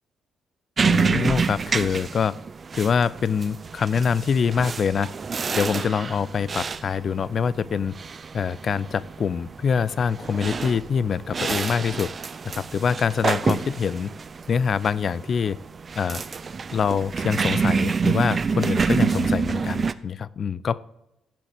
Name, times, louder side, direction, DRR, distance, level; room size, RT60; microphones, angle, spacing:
voice 1, 0.8-2.4 2.7-5.1 5.5-7.9 8.3-12.1 12.4-14.1 14.5-15.6 16.0-16.2 16.7-20.8, left 6 dB, 50° left, 20 dB, 0.4 m, -25 dB
sound 1, 0.8-19.9, right 5 dB, 40° right, 0.5 m, -27 dB
16.5 x 5.9 x 3.5 m, 0.87 s
hypercardioid pair, 45°, 0 cm